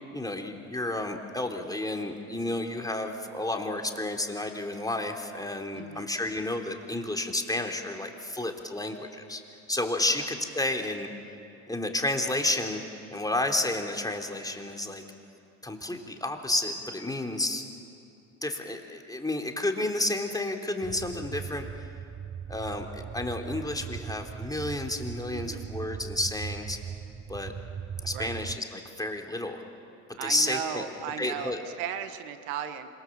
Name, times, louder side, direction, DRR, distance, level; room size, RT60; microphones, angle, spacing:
voice 1, 0.1-9.4 9.7-11.1 11.7-12.8 13.1-15.0 15.6-17.6 18.4-21.9 22.5-26.8 27.3-27.5 28.0-29.6 30.2-30.8 31.2-31.6, left 1 dB, 10° left, 3 dB, 3.5 m, -31 dB
voice 2, 5.7-6.1 10.2-10.3 25.3-25.7 28.1-28.4 30.2-32.9, right 9 dB, 80° right, 9 dB, 1.7 m, -36 dB
sound 1, 20.8-28.6, right 8 dB, 25° right, 0.8 m, -39 dB
27.0 x 26.5 x 7.6 m, 2.6 s
hypercardioid pair, 75°, 41 cm